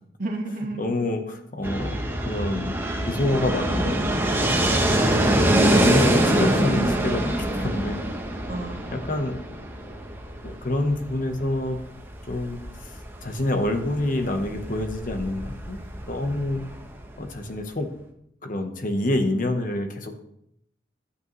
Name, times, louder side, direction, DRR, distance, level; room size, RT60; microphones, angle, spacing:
voice 1, 0.2-1.1 1.6-1.8 5.6-6.3 8.5-9.4 16.2-16.8, right 2 dB, 45° right, 1 dB, 1.5 m, -35 dB
voice 2, 0.8-2.8 3.1-4.1 5.8-8.0 8.9-9.4 10.4-11.8 12.3-12.6 12.8-15.8 16.1-16.6 17.2-17.9 18.4-20.2, left 1 dB, 45° left, 6 dB, 1.0 m, -27 dB
Fixed-wing aircraft airplane, 1.6-17.4, right 1 dB, 10° right, 0.9 m, -25 dB
11.5 x 8.3 x 3.1 m, 0.75 s
head